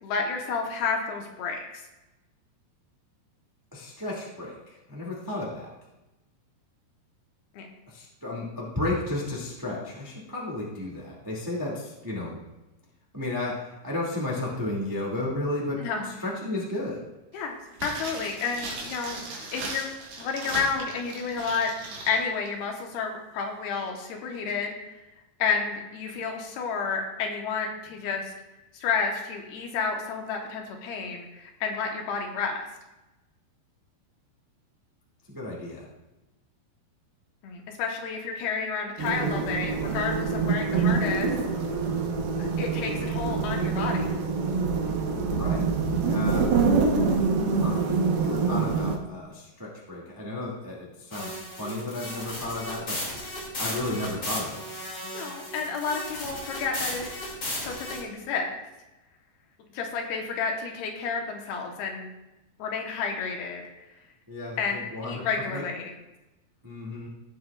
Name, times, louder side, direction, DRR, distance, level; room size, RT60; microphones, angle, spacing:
voice 1, 0.0-1.8 7.5-7.7 15.8-16.1 17.3-17.5 17.8-19.2 19.5-21.7 22.1-24.7 25.4-28.3 28.7-32.7 37.4-41.3 42.4-44.0 55.1-57.1 57.6-58.6 59.7-62.1 62.6-63.6 64.6-64.8 65.0-65.8, left 5 dB, 75° left, 2 dB, 3.0 m, -30 dB
voice 2, 3.7-5.7 7.9-12.4 13.1-17.0 35.3-35.9 45.4-45.7 46.1-46.5 47.5-47.8 48.2-53.0 53.6-54.7 64.3-65.3 65.5-65.6 66.6-67.1, left 2 dB, 30° right, -4 dB, 0.4 m, -33 dB
sound 1, 17.7-22.2 22.5-22.6, right 3 dB, 90° right, 4.0 m, -38 dB
sound 2, 39.0-49.0, right 4 dB, 70° right, 2.8 m, -25 dB
sound 3, 51.1-58.0, left 1 dB, 30° left, 2.3 m, -35 dB
16.5 x 7.8 x 2.4 m, 1.0 s
omnidirectional pair, 4.8 m